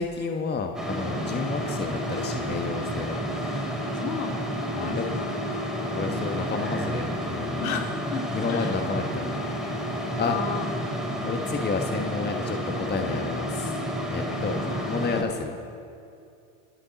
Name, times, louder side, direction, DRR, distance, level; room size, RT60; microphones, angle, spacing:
voice 1, 0.0-3.2 4.7-5.0 5.8-7.7 8.3-9.4 9.9-10.4 11.2-13.8 14.1-14.6 14.8-15.6, left 4 dB, 25° left, 4 dB, 1.3 m, -31 dB
sound 1, 0.7-15.2, equal, ahead, 3.7 m, -30 dB
voice 2, 3.9-5.3 7.6-8.8 10.1-10.7 14.2-14.9, left 5 dB, 60° left, 3 dB, 2.3 m, -34 dB
27.0 x 11.5 x 4.1 m, 2.5 s
hypercardioid pair, 85°, 43 cm